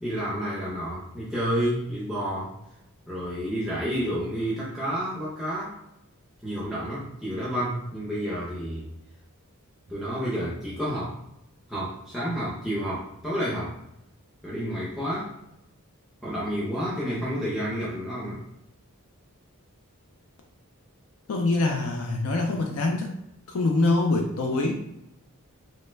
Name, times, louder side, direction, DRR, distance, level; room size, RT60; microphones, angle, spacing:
voice 1, 0.0-2.5 3.1-5.7 6.4-8.9 9.9-11.2 11.7-13.7 14.4-15.3 16.2-18.4, equal, ahead, -8 dB, 0.5 m, -30 dB
voice 2, 21.3-23.1 23.5-24.7, left 2 dB, 75° left, 2 dB, 0.4 m, -24 dB
3.1 x 2.0 x 3.2 m, 0.83 s
head